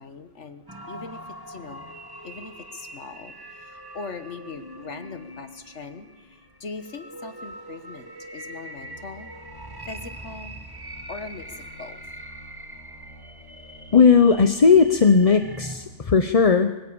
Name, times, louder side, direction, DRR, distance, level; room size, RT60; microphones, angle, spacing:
voice 1, 0.0-1.9 2.2-9.3 9.9-10.6 11.1-12.0, left 4 dB, 60° left, 10 dB, 1.6 m, -40 dB
sound 1, 0.7-15.8, right 1 dB, 15° right, 1.7 m, -42 dB
sound 2, 8.7-14.2 14.5-15.9, left 1 dB, 65° right, 6.5 m, -50 dB
voice 2, 13.9-16.7, left 5 dB, 35° left, 9 dB, 0.8 m, -17 dB
24.0 x 16.5 x 8.8 m, 1.1 s
omnidirectional pair, 1.4 m